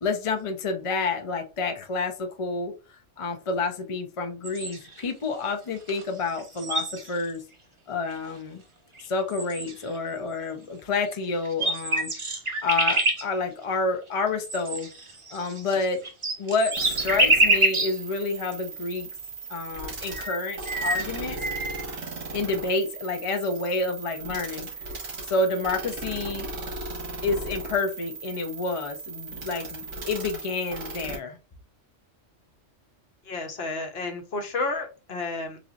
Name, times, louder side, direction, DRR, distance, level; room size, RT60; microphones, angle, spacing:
voice 1, 0.0-2.7 3.2-7.4 7.9-8.6 9.1-12.3 12.6-14.9 15.3-16.0 16.4-19.1 19.5-21.4 22.3-24.7 25.3-26.5 27.2-31.4, left 3 dB, 40° left, 5 dB, 0.5 m, -29 dB
sound 1, 4.4-5.0 5.9-6.0 6.3-7.4 8.1-8.2 9.0-9.1 9.3-10.0 11.1-11.2 11.4-13.2 14.4-18.0 18.5-18.6 19.8-19.9 20.1-21.8, right 2 dB, 30° right, 0.7 m, -26 dB
sound 2, 16.7-31.2, right 3 dB, 85° right, 1.8 m, -37 dB
voice 2, 33.2-35.6, left 3 dB, 60° left, 5 dB, 1.0 m, -31 dB
4.0 x 3.0 x 2.4 m, 0.31 s
omnidirectional pair, 1.3 m